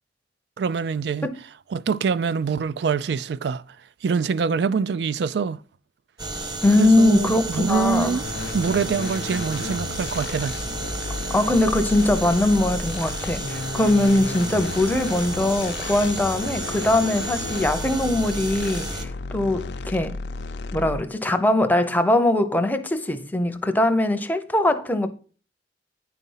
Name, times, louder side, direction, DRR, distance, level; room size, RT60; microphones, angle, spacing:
voice 1, 0.6-1.3 1.7-3.6 4.0-5.6 6.8-8.3 8.5-10.6, right 5 dB, 70° right, 0.4 m, -25 dB
sound 1, 6.2-19.0, right 2 dB, 25° right, 1.0 m, -32 dB
voice 2, 6.6-8.2 11.3-20.2 20.7-25.1, left 1 dB, 10° left, 0.6 m, -21 dB
sound 2, 8.2-21.2, left 3 dB, 75° left, 0.6 m, -34 dB
9.9 x 4.2 x 5.5 m
head